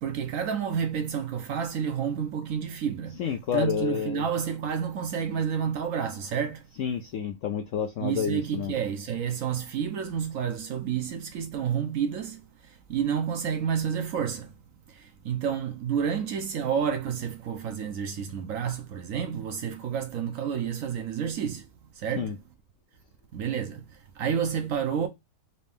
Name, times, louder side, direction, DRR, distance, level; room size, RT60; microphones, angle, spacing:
voice 1, 0.0-3.2 3.5-6.7 8.0-14.5 14.9-21.7 21.9-22.4 23.3-25.1, right 7 dB, 65° right, 0.9 m, -30 dB
voice 2, 3.2-4.2 6.8-8.7 22.2-22.3, left 8 dB, 70° left, 0.7 m, -29 dB
4.2 x 2.7 x 3.4 m
omnidirectional pair, 1.8 m